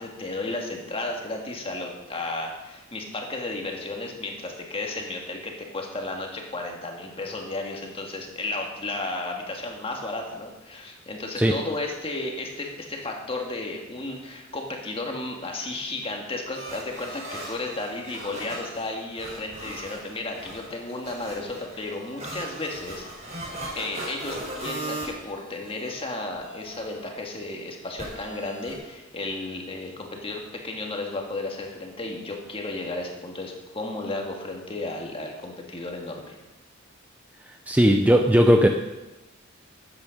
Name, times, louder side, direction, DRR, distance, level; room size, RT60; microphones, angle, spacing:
voice 1, 0.0-23.1 23.8-36.4, left 2 dB, 30° left, 1 dB, 1.8 m, -33 dB
sound 1, 16.5-26.0 26.3-27.1 28.0-28.7, right 1 dB, 35° right, 4.3 m, -38 dB
voice 2, 37.7-38.7, equal, 5° right, 4 dB, 0.5 m, -17 dB
12.5 x 8.8 x 5.1 m, 1.1 s
head